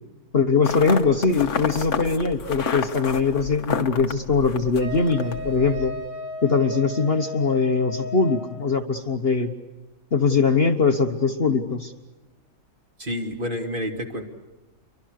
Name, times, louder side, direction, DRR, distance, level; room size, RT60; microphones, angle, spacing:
voice 1, 0.3-5.9 6.4-9.5 10.1-11.9, left 4 dB, 40° left, 6 dB, 1.4 m, -21 dB
sound 1, 0.6-6.0, left 6 dB, 70° left, 1.8 m, -30 dB
Wind instrument woodwind instrument, 4.8-8.6, equal, 50° right, 7.5 m, -34 dB
voice 2, 13.0-14.2, equal, 30° right, 3 dB, 2.9 m, -29 dB
30.0 x 24.5 x 6.5 m, 1.1 s
omnidirectional pair, 1.7 m